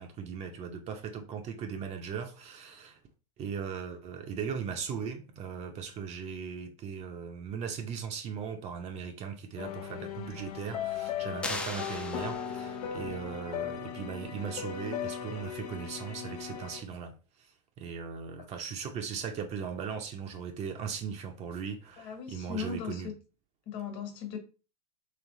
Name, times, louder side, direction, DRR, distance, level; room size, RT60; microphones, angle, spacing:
voice 1, 0.0-3.0 3.4-17.1 17.4-17.5 17.8-23.1, right 6 dB, 30° right, 0.7 m, -38 dB
sound 1, 9.6-16.8, left 8 dB, 60° left, 0.6 m, -37 dB
sound 2, 11.4-12.9, left 2 dB, 5° left, 0.5 m, -38 dB
voice 2, 22.0-23.1 23.7-24.4, left 6 dB, 45° left, 1.5 m, -38 dB
3.3 x 3.2 x 4.0 m
hypercardioid pair, 95°, 21 cm